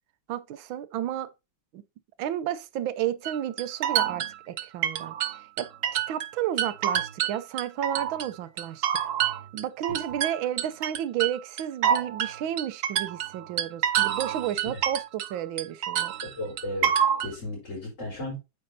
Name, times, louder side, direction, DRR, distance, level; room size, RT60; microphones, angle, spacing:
voice 1, 0.3-1.3 1.7-1.8 2.2-8.9 9.5-16.1, right 11 dB, 85° right, 1.5 m, -32 dB
sound 1, 3.2-6.3 6.6-8.3 8.6-15.3 15.6-17.3, right 9 dB, 65° right, 0.8 m, -27 dB
voice 2, 16.2-18.3, left 1 dB, 35° left, 4.4 m, -35 dB
8.9 x 6.5 x 2.7 m
omnidirectional pair, 2.1 m